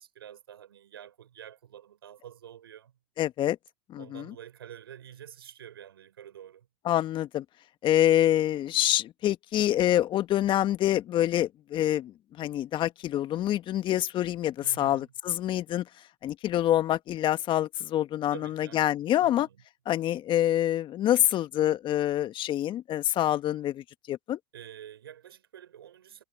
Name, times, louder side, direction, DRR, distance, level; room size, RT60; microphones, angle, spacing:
voice 1, 0.0-2.9 4.0-6.7 14.6-15.1 18.3-19.6 24.5-26.2, right 10 dB, 85° right, 6.4 m, -48 dB
voice 2, 3.2-3.6 3.9-4.3 6.8-7.4 7.8-15.8 16.2-19.5 19.8-24.4, left 12 dB, 40° left, 1.5 m, -26 dB
hypercardioid pair, 90°, 12 cm